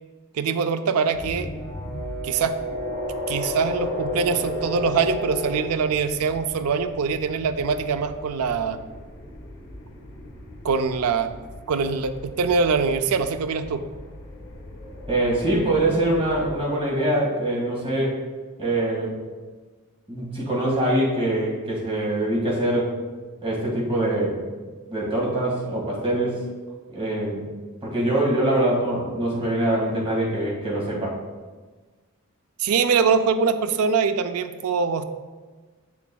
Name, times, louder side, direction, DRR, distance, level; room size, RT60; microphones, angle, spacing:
voice 1, 0.3-1.5 2.2-2.5 3.3-8.8 10.6-11.3 11.7-13.8 32.6-35.0, right 5 dB, 70° right, 10 dB, 0.4 m, -23 dB
sound 1, 1.1-16.6, left 1 dB, 90° left, 1.3 m, -38 dB
Brass instrument, 1.5-5.8, equal, 10° left, 2.0 m, -32 dB
voice 2, 15.1-18.2 18.6-19.1 20.1-22.9 23.4-24.4 24.9-26.4 26.9-27.4 27.8-31.2, right 1 dB, 25° right, -4 dB, 1.8 m, -23 dB
7.1 x 7.0 x 2.3 m, 1.3 s
head